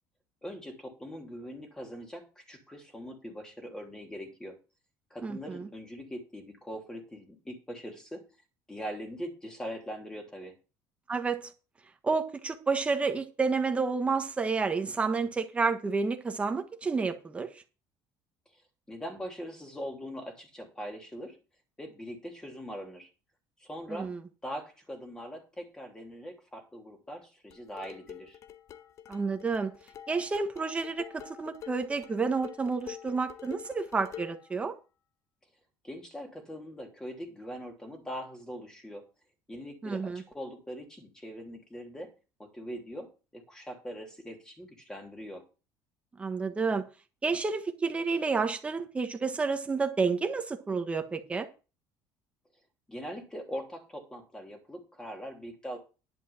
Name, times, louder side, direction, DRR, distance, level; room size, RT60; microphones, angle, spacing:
voice 1, 0.4-4.6 5.1-8.2 8.7-10.5 18.9-21.4 21.8-23.1 23.6-24.1 24.4-28.4 35.8-39.1 39.5-42.1 42.4-45.4 52.9-55.8, equal, 10° left, 3.0 m, -41 dB
voice 2, 5.2-5.7 11.1-11.5 12.0-17.5 23.9-24.2 29.1-29.7 30.1-34.7 39.8-40.2 46.2-46.8 47.2-51.5, right 4 dB, 15° right, 1.4 m, -30 dB
sound 1, 27.5-34.5, left 10 dB, 45° left, 0.9 m, -47 dB
11.0 x 5.2 x 7.1 m
cardioid pair, 140°, 7 cm